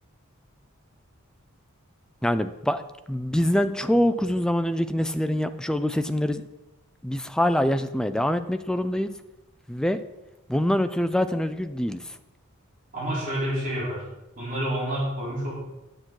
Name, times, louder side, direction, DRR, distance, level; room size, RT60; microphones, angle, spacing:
voice 1, 2.2-2.8 3.1-6.4 7.0-9.1 9.7-10.0 10.5-12.0, left 1 dB, 5° left, 10 dB, 0.4 m, -24 dB
voice 2, 12.9-14.0 14.4-15.5, right 1 dB, 40° right, -9 dB, 4.0 m, -28 dB
9.2 x 7.3 x 4.6 m, 0.97 s
head